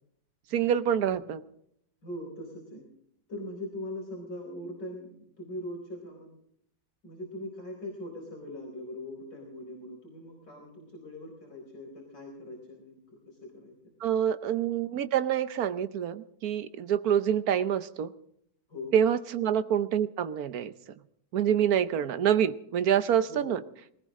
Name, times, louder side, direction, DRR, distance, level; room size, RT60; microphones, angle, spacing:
voice 1, 0.5-1.4 14.0-18.1 18.9-20.7 21.3-23.6, right 9 dB, 60° right, 13 dB, 1.2 m, -26 dB
voice 2, 2.0-2.9 3.3-6.3 7.0-13.7 18.7-18.9 21.9-22.0 23.3-23.6, left 1 dB, 60° left, -2 dB, 5.2 m, -41 dB
20.5 x 19.0 x 3.7 m, 0.70 s
omnidirectional pair, 2.1 m